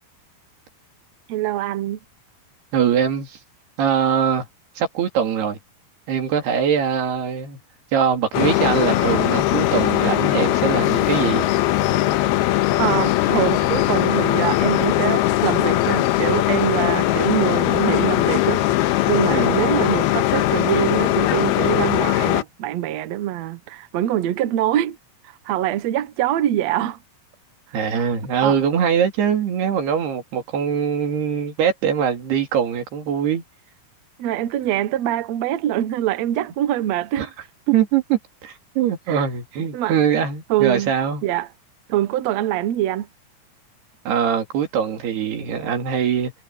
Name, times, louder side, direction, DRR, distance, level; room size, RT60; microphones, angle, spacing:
voice 1, 1.3-2.0 12.8-18.8 19.1-25.0 25.4-27.0 27.9-28.1 28.4-28.6 34.2-37.3 39.1-39.3 39.7-40.0 40.5-40.9 41.2-41.5 41.9-43.1, right 12 dB, 70° right, 1.6 m, -24 dB
voice 2, 2.7-3.4 3.8-4.5 4.8-5.6 6.1-7.6 7.9-11.5 19.3-19.6 27.7-33.4 37.2-37.3 37.7-41.2 44.1-46.3, right 8 dB, 90° right, 4.8 m, -22 dB
sound 1, 8.3-22.4, left 15 dB, 90° left, 2.9 m, -20 dB
omnidirectional pair, 4.5 m